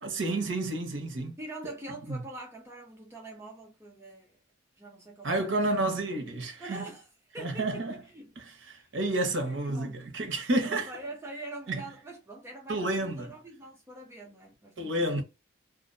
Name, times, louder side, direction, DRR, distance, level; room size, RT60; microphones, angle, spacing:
voice 1, 0.0-1.4 2.1-2.2 5.2-6.9 7.4-7.9 8.4-10.9 11.7-11.8 12.7-13.3 14.8-15.2, right 2 dB, 65° right, 0.7 m, -30 dB
voice 2, 1.4-4.4 4.8-5.6 6.6-7.0 7.3-7.9 8.1-8.3 8.6-8.9 9.4-10.0 10.6-15.2, right 2 dB, 15° right, 0.4 m, -44 dB
2.4 x 2.0 x 2.5 m
head